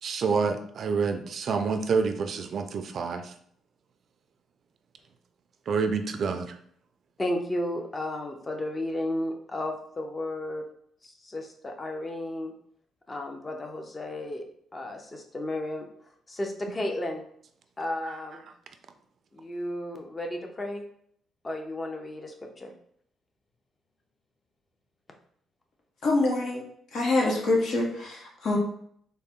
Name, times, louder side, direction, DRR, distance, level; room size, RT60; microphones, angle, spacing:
voice 1, 0.0-3.3 5.7-6.6 18.0-18.2, right 5 dB, 55° right, 8 dB, 0.4 m, -28 dB
voice 2, 7.2-10.6 11.0-12.5 13.1-14.4 14.7-15.9 16.3-17.2 17.8-18.4 19.3-20.8 21.4-22.7, left 1 dB, 25° left, 4 dB, 0.7 m, -33 dB
voice 3, 26.0-26.6 26.9-28.6, left 2 dB, 65° left, -1 dB, 1.1 m, -25 dB
4.0 x 2.1 x 3.6 m, 0.65 s
cardioid pair, 90°, 0 cm